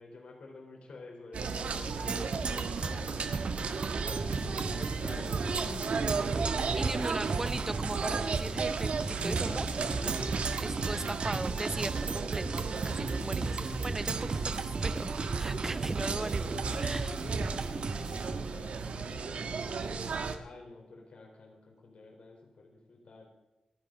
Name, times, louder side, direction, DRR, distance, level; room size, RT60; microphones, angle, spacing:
voice 1, 0.0-3.3 3.6-6.6 7.1-7.8 10.7-11.6 18.0-20.0 20.4-23.3, left 2 dB, 65° left, 1 dB, 4.0 m, -50 dB
sound 1, 1.3-20.4, right 5 dB, 80° right, 1.4 m, -35 dB
Percussion, 2.1-18.1, right 4 dB, 55° right, 1.0 m, -37 dB
sound 2, 4.2-18.7, right 3 dB, 40° right, 1.7 m, -38 dB
voice 2, 6.8-10.1 10.6-17.3, right 2 dB, 20° right, 13 dB, 0.7 m, -39 dB
27.5 x 10.0 x 3.9 m, 1.0 s
wide cardioid pair, 170°, 2 cm